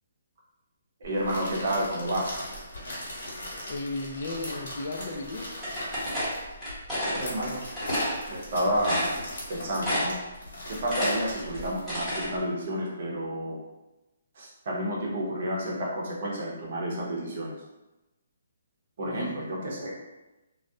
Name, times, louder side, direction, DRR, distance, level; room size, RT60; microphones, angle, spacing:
sound 1, 1.0-12.4, equal, 65° left, 1.0 m, -39 dB
voice 1, 1.0-2.4 7.0-7.6 8.3-9.2 9.5-10.2 10.6-13.6 14.4-17.5 19.0-20.0, equal, 50° right, -3 dB, 0.7 m, -30 dB
voice 2, 3.7-5.5 19.0-19.4, left 2 dB, 50° left, 1 dB, 0.4 m, -35 dB
sound 2, 5.6-7.2 7.8-8.1 8.5-8.6 8.8-9.5 9.8-10.3 10.6-12.3, equal, ahead, 1.0 m, -29 dB
2.3 x 2.0 x 2.6 m, 1.0 s
hypercardioid pair, 160°, 0 cm